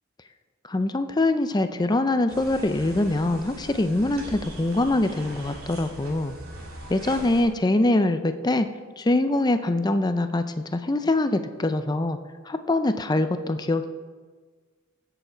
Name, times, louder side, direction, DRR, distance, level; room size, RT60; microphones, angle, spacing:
voice 1, 0.7-6.4 6.9-8.7 9.0-12.2 12.4-13.8, left 2 dB, 20° left, 9 dB, 0.5 m, -23 dB
sound 1, 2.3-7.4, right 1 dB, 75° right, 2.8 m, -41 dB
16.5 x 7.1 x 4.5 m, 1.5 s
head